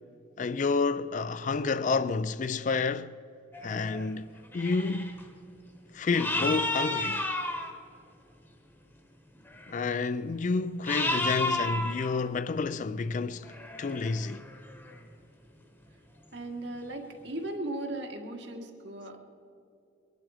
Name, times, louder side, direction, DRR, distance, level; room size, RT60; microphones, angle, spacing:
voice 1, 0.4-3.2 3.6-4.3 4.5-5.3 5.9-7.2 9.7-14.4, left 4 dB, 40° left, 0.4 m, -29 dB
sound 1, 3.5-4.1 4.4-5.2 6.1-7.7 9.5-10.0 10.9-12.2 13.3-15.0, left 2 dB, 10° left, 1.1 m, -32 dB
voice 2, 16.3-19.2, right 1 dB, 70° right, 1.7 m, -37 dB
23.0 x 11.0 x 4.9 m
head